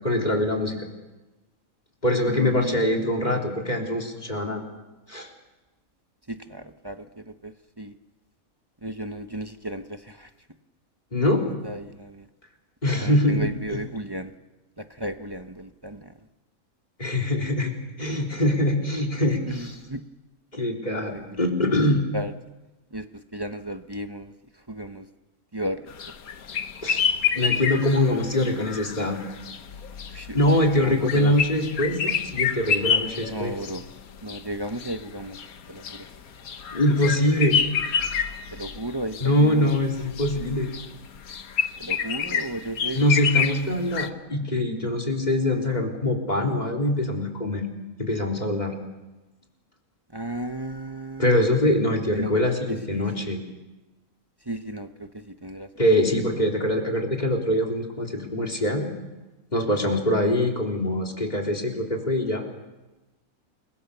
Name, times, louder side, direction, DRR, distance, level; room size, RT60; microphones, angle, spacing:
voice 1, 0.0-0.9 2.0-4.6 5.1-5.3 11.1-11.4 12.8-13.8 17.0-19.8 20.5-22.0 26.8-27.0 27.3-29.2 30.3-33.6 36.7-37.6 39.2-40.7 42.9-47.7 48.0-48.7 51.2-53.4 55.8-58.9 59.5-62.4, left 1 dB, 30° left, 4 dB, 3.7 m, -23 dB
voice 2, 2.3-3.4 6.3-7.1 7.4-7.5 7.8-7.9 8.8-10.3 11.6-12.2 13.0-14.3 14.8-16.1 19.5-20.0 21.1-21.4 22.1-22.3 22.9-23.0 23.3-24.3 24.7-25.1 25.5-25.8 30.1-30.4 30.8-31.3 33.3-33.8 34.2-35.4 35.7-36.0 38.5-39.7 41.8-43.1 50.1-51.3 52.1-53.3 54.5-55.7, right 1 dB, 20° right, 7 dB, 0.9 m, -34 dB
sound 1, 25.9-44.1, left 7 dB, 85° left, 1.6 m, -28 dB
29.0 x 22.5 x 6.9 m, 1.1 s
omnidirectional pair, 1.5 m